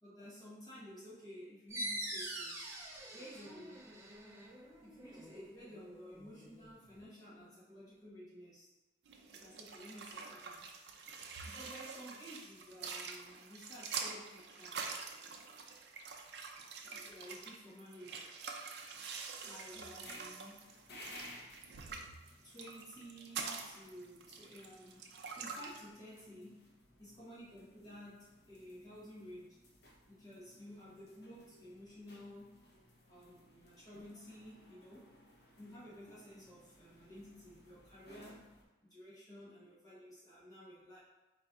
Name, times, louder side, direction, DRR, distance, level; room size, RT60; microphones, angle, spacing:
voice 1, 0.0-2.6 3.1-3.9 4.8-8.7 9.3-10.6 11.4-14.9 16.8-18.3 19.4-20.7 22.4-25.1 25.3-26.6 27.0-29.6 30.1-32.6 33.1-35.1 35.4-38.5 38.8-41.0, equal, 20° left, -9 dB, 1.1 m, -53 dB
sound 1, 1.7-7.0, right 1 dB, 15° right, 0.5 m, -45 dB
sound 2, 9.1-25.8, right 5 dB, 65° right, 0.4 m, -46 dB
sound 3, 19.9-38.6, left 1 dB, 60° left, 0.7 m, -59 dB
4.2 x 4.0 x 2.3 m, 1.1 s
head